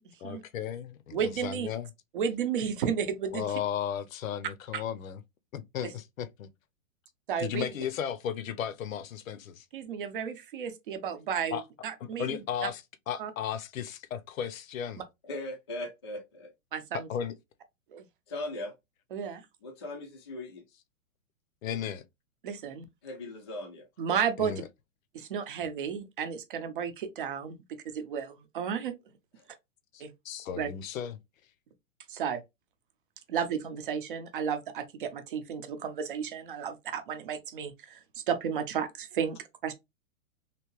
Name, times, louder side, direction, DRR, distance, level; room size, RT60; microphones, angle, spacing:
voice 1, 0.2-1.9 3.3-5.2 5.5-6.5 7.4-9.5 11.5-11.6 12.0-15.0 16.9-17.3 21.6-22.0 24.4-24.7 29.9-31.1, left 9 dB, 75° left, 0.7 m, -35 dB
voice 2, 1.1-1.7 2.1-3.4 4.7-4.8 7.3-7.7 9.7-12.3 12.6-12.7 13.2-13.3 16.7-17.1 17.9-18.0 19.1-19.4 22.4-22.9 24.0-24.5 25.1-27.6 27.9-28.9 30.0-30.1 30.6-30.7 32.1-32.4 33.3-38.0 38.3-39.4 39.6-39.7, right 7 dB, 40° right, 0.6 m, -32 dB
voice 3, 15.2-16.5 18.3-18.7 19.6-20.6 23.0-23.9 29.4-29.5, left 1 dB, 20° left, 0.4 m, -39 dB
3.3 x 2.7 x 3.0 m
hypercardioid pair, 170°, 40 cm